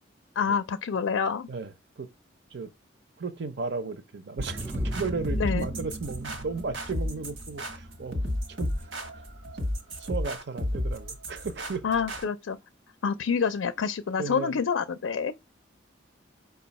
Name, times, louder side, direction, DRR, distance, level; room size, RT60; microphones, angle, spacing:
voice 1, 0.4-1.5 5.3-5.7 11.8-12.6 13.0-15.3, left 6 dB, 90° left, 0.4 m, -27 dB
voice 2, 3.2-8.2 8.6-8.9 10.0-11.8 14.2-14.6, right 4 dB, 60° right, 0.6 m, -34 dB
sound 1, 4.4-9.9, right 1 dB, 10° right, 0.3 m, -40 dB
sound 2, 4.4-12.2, left 1 dB, 80° right, 1.2 m, -32 dB
5.4 x 2.4 x 4.1 m
head